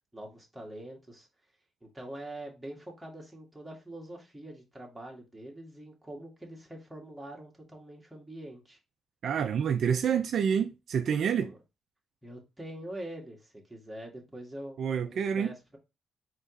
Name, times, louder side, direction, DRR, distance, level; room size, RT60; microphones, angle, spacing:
voice 1, 0.1-1.3 1.8-8.8 11.4-11.6 12.2-14.8 15.0-15.8, right 1 dB, 5° right, 1.7 m, -44 dB
voice 2, 9.2-11.5 14.8-15.5, right 7 dB, 60° right, 0.4 m, -28 dB
4.0 x 3.0 x 3.8 m
cardioid pair, 90°, 0 cm